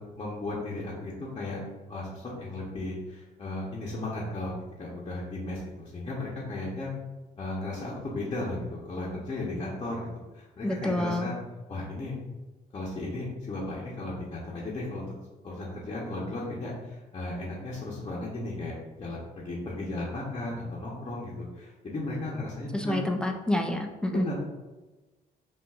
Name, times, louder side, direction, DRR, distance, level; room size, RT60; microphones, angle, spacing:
voice 1, 0.2-1.6 1.9-4.5 4.8-6.9 7.4-11.3 11.7-12.1 12.7-15.1 15.4-23.0 24.1-24.3, left 2 dB, 30° left, -6 dB, 0.9 m, -35 dB
voice 2, 10.6-11.3 22.7-24.2, left 1 dB, 5° left, 3 dB, 0.4 m, -28 dB
5.7 x 2.6 x 2.4 m, 1.2 s
cardioid pair, 110°, 17 cm